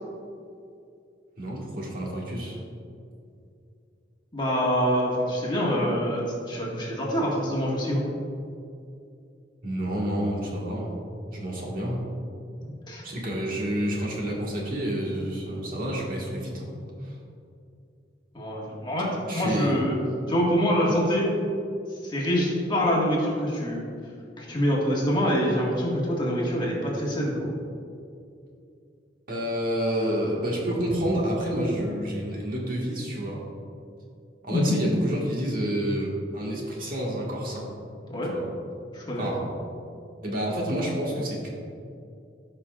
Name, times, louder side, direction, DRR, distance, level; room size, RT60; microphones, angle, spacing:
voice 1, 1.4-2.6 9.6-10.9 11.3-12.0 13.0-16.7 17.0-17.2 19.3-19.7 29.3-33.4 34.4-37.6 38.3-38.5 39.2-39.5 40.2-41.5, equal, 50° right, -3 dB, 1.7 m, -29 dB
voice 2, 4.3-8.0 12.6-13.0 18.3-19.9 20.3-21.3 22.0-23.9 24.4-27.5 34.5-34.8 38.1-38.3 38.9-39.3, equal, 25° left, -4 dB, 1.7 m, -25 dB
16.0 x 5.6 x 2.4 m, 2.5 s
head